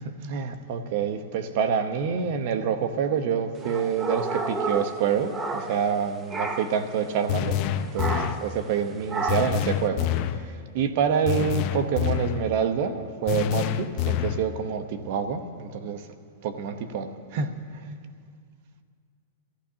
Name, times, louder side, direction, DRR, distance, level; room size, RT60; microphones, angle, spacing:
voice 1, 0.3-7.6 7.9-16.1 16.4-17.9, right 7 dB, 55° right, 9 dB, 1.0 m, -27 dB
sound 1, 3.6-6.0 6.3-6.8 8.0-8.5 9.1-9.7, right 3 dB, 20° right, 0.8 m, -31 dB
sound 2, 7.3-8.5 9.3-10.4 11.3-12.5 13.3-14.5, left 11 dB, 45° left, 0.6 m, -27 dB
23.5 x 14.5 x 2.9 m, 2.1 s
hypercardioid pair, 130°, 0 cm